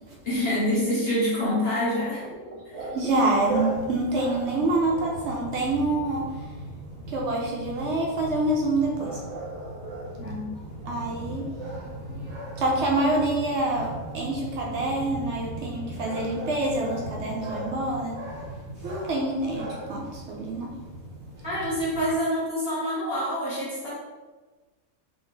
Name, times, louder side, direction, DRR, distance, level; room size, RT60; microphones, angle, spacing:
voice 1, 0.2-2.2 2.7-2.9 10.2-10.5 21.4-23.9, equal, 45° left, -8 dB, 1.0 m, -26 dB
voice 2, 2.2-6.3 7.1-10.2 10.8-20.7, right 2 dB, 65° right, -1 dB, 0.7 m, -27 dB
sound 1, 3.5-22.2, right 1 dB, 75° left, 1.7 m, -40 dB
3.4 x 2.7 x 3.0 m, 1.3 s
omnidirectional pair, 1.5 m